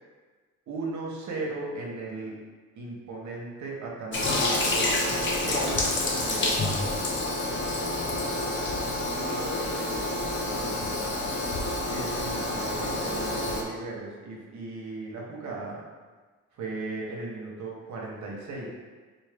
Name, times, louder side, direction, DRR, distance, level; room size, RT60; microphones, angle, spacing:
voice 1, 0.7-2.4 2.8-6.6 11.8-15.8 16.5-18.7, right 3 dB, 70° right, -2 dB, 1.0 m, -37 dB
Toilet flush, 4.1-13.6, left 2 dB, 40° left, 0.7 m, -28 dB
voice 2, 8.8-11.3, right 2 dB, 30° right, -2 dB, 0.6 m, -41 dB
4.1 x 2.7 x 3.4 m, 1.4 s
cardioid pair, 90°, 30 cm